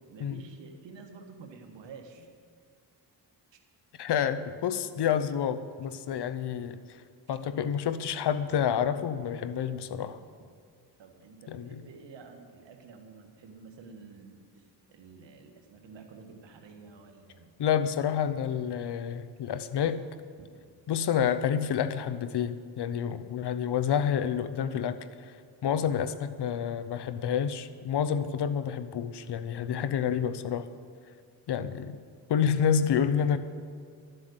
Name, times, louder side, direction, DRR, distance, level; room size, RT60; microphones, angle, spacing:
voice 1, 0.0-2.3 3.5-3.6 7.3-7.4 11.0-17.6 20.4-20.5, right 4 dB, 80° right, 4 dB, 1.7 m, -50 dB
voice 2, 4.0-6.8 7.3-10.2 11.5-11.8 17.6-20.1 20.9-25.4 25.6-30.7 31.5-32.0 32.3-33.4, left 8 dB, 65° left, 13 dB, 0.8 m, -29 dB
12.5 x 7.8 x 8.0 m, 2.2 s
cardioid pair, 80°, 43 cm